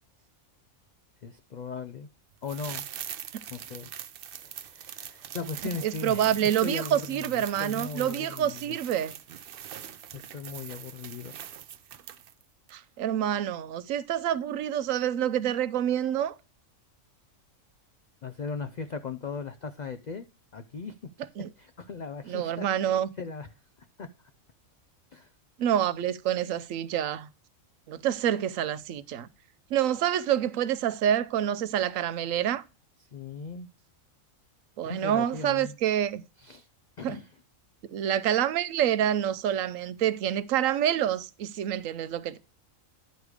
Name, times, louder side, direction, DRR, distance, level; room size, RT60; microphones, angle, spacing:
voice 1, 1.2-2.1 2.4-2.9 3.5-3.9 4.3-8.8 10.1-11.4 18.2-20.3 20.5-21.0 21.6-22.7 23.2-23.5 23.8-24.1 25.1-25.3 33.0-33.7 34.8-35.8 36.4-36.7 37.0-37.3, left 5 dB, 90° left, 0.4 m, -38 dB
sound 1, 2.4-12.4 12.7-12.8, right 9 dB, 60° right, 0.6 m, -42 dB
voice 2, 5.8-9.1 12.7-16.3 21.4-21.5 22.3-23.1 25.6-27.3 27.9-29.3 29.7-32.6 34.8-36.2 37.0-37.2 37.9-42.4, right 10 dB, 75° right, 1.0 m, -27 dB
10.5 x 4.8 x 4.8 m
omnidirectional pair, 1.4 m